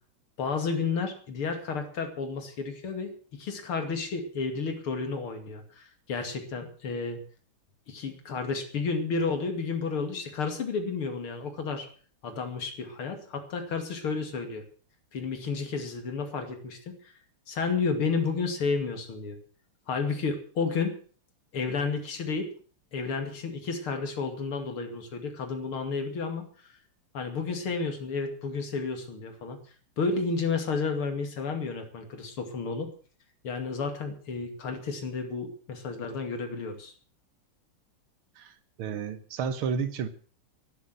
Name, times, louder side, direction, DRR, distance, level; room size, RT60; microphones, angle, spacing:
voice 1, 0.4-7.2 7.9-11.9 12.2-14.6 15.1-17.1 17.5-19.4 19.9-21.0 21.5-22.5 22.9-26.4 27.1-29.6 30.0-32.9 33.4-36.9, left 4 dB, 75° left, 6 dB, 3.2 m, -31 dB
voice 2, 38.4-40.1, right 6 dB, 70° right, 13 dB, 2.1 m, -32 dB
12.0 x 11.5 x 7.6 m, 0.43 s
omnidirectional pair, 2.4 m